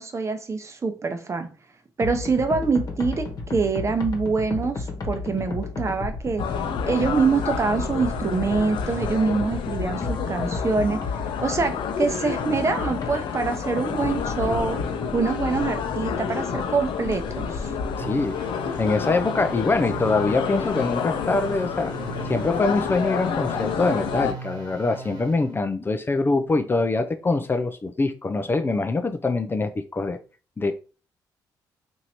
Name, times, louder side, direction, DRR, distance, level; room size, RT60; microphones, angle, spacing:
voice 1, 0.0-1.5 2.0-14.9 15.1-17.7, right 4 dB, 35° right, 0.8 m, -25 dB
sound 1, 2.0-18.0, left 3 dB, 45° left, 1.1 m, -33 dB
sound 2, 6.4-24.3, left 7 dB, 70° left, 0.6 m, -29 dB
voice 2, 18.0-18.4 18.8-21.9 22.3-30.2 30.6-30.7, left 3 dB, 25° left, 0.4 m, -24 dB
sound 3, 18.0-25.6, right 4 dB, 70° right, 1.1 m, -39 dB
3.0 x 2.7 x 4.3 m
supercardioid pair, 65°, 9 cm